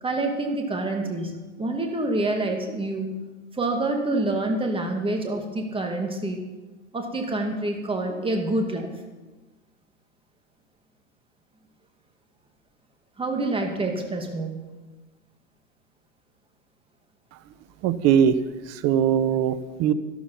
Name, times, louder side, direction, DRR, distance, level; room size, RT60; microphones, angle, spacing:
voice 1, 0.0-3.1 3.5-6.4 6.9-8.9 13.2-14.5, right 2 dB, 15° right, 3 dB, 2.4 m, -27 dB
voice 2, 17.8-18.4 18.7-19.9, right 9 dB, 40° right, 14 dB, 1.0 m, -21 dB
12.0 x 12.0 x 5.7 m, 1.2 s
hypercardioid pair, 105°, 41 cm